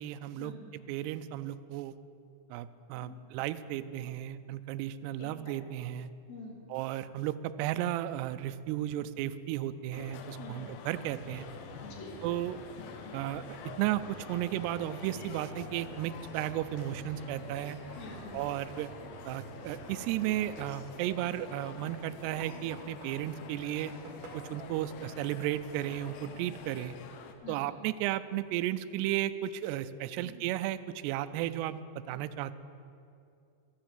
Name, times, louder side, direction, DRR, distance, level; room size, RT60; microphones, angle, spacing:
voice 1, 0.0-1.9 2.5-6.1 6.7-11.5 12.2-12.6 13.1-13.4 13.8-17.8 18.3-18.9 19.3-23.9 24.3-26.9 27.5-31.8 32.1-32.5, right 13 dB, 90° right, 12 dB, 2.4 m, -34 dB
voice 2, 5.2-5.5 6.3-6.6 10.4-10.6 11.8-12.1 18.0-18.4 26.2-26.3 27.4-27.7 30.2-30.3, left 4 dB, 60° left, -2 dB, 3.7 m, -46 dB
sound 1, 9.9-27.3, left 7 dB, 80° left, 2.1 m, -47 dB
sound 2, 11.2-20.8, right 4 dB, 75° right, 3.3 m, -50 dB
sound 3, 16.8-17.0 19.5-19.9 20.5-23.2 23.7-24.8, right 3 dB, 55° right, 2.9 m, -51 dB
12.5 x 9.5 x 7.4 m, 2.5 s
omnidirectional pair, 5.3 m